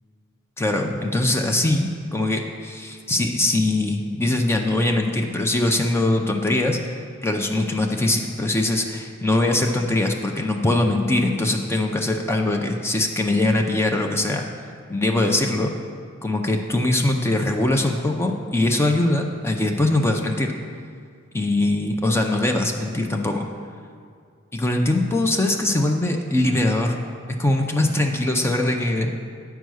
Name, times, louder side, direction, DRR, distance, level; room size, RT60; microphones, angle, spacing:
voice 1, 0.6-6.8 7.2-14.5 14.9-15.7 16.2-20.5 21.3-23.5 24.5-27.0 27.4-29.1, left 2 dB, 10° left, 2 dB, 0.4 m, -22 dB
9.2 x 4.6 x 6.2 m, 2.2 s
head